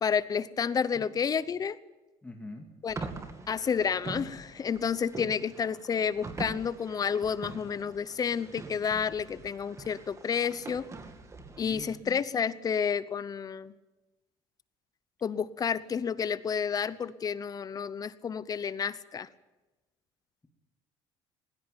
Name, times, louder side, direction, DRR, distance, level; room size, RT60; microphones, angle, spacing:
voice 1, 0.0-1.8 2.8-3.0 3.5-10.9 11.6-13.7 15.2-19.3, left 7 dB, 30° left, 17 dB, 0.8 m, -30 dB
voice 2, 2.2-2.7 5.2-5.4 11.6-12.2, left 2 dB, 10° left, 2 dB, 2.2 m, -44 dB
sound 1, 2.9-12.0, right 3 dB, 25° right, 2.3 m, -43 dB
19.5 x 16.0 x 9.0 m, 1.1 s
cardioid pair, 115°, 12 cm